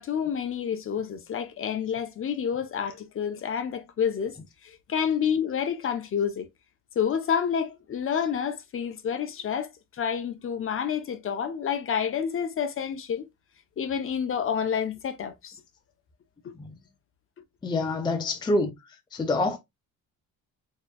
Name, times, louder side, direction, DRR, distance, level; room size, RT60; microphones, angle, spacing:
voice 1, 0.0-4.4 4.6-6.5 7.0-13.2 13.8-15.6 16.4-16.5, left 7 dB, 40° left, 0.8 m, -29 dB
voice 2, 17.6-18.8 19.1-19.6, left 2 dB, 15° left, 0.5 m, -26 dB
4.4 x 3.1 x 2.2 m
cardioid pair, 125°, 32 cm